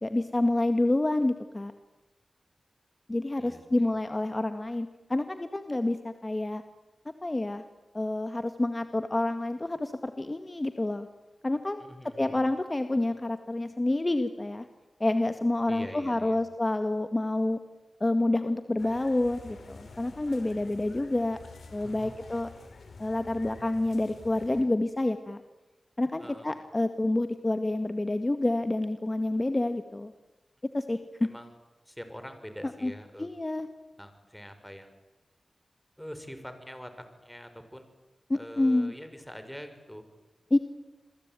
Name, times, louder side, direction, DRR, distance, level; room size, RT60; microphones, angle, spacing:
voice 1, 0.0-1.7 3.1-6.6 7.2-7.6 7.9-11.1 11.4-11.8 12.2-14.7 15.0-17.6 18.0-21.4 21.7-22.5 23.0-25.4 26.0-30.1 30.7-31.0 32.8-32.9 33.2-33.7 38.3-38.9 40.5-40.6, left 2 dB, 30° left, 8 dB, 1.9 m, -28 dB
voice 2, 3.4-3.9 11.8-12.4 15.7-16.4 21.8-22.1 26.2-26.6 31.2-31.6 31.9-33.3 34.0-34.9 36.0-36.9 37.2-37.8 38.3-40.0, equal, 5° left, 8 dB, 6.0 m, -44 dB
sound 1, 18.8-24.6, left 3 dB, 85° left, 5.1 m, -49 dB
29.0 x 22.0 x 9.2 m, 1.0 s
cardioid pair, 45°, 0 cm